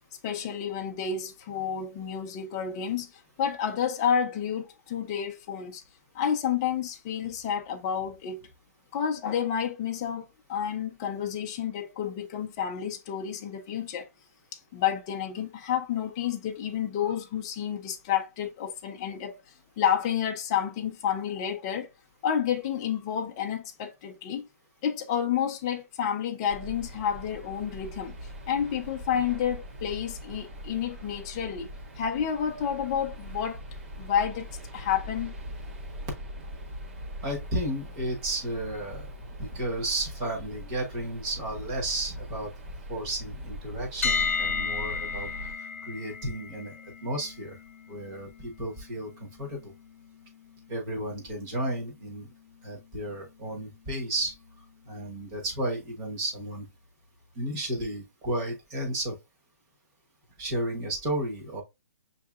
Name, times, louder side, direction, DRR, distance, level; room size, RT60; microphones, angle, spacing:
voice 1, 0.2-3.1 3.4-5.8 6.1-8.5 8.9-14.1 14.7-19.3 19.8-21.9 22.2-24.5 24.8-28.1 28.5-31.7 32.0-33.6 34.0-34.5 34.7-35.3, left 8 dB, 20° left, 0.5 m, -30 dB
sound 1, 26.5-45.5, equal, 50° right, 1.0 m, -41 dB
voice 2, 37.2-39.1 39.4-42.5 42.9-45.3 45.8-46.7 47.0-47.6 47.9-49.7 50.7-52.3 52.6-54.3 54.9-56.7 57.3-59.2 60.4-61.6, right 1 dB, 20° right, 1.2 m, -33 dB
sound 2, 44.0-55.9, left 5 dB, 50° left, 0.9 m, -37 dB
6.6 x 2.7 x 2.4 m
hypercardioid pair, 175°, 9 cm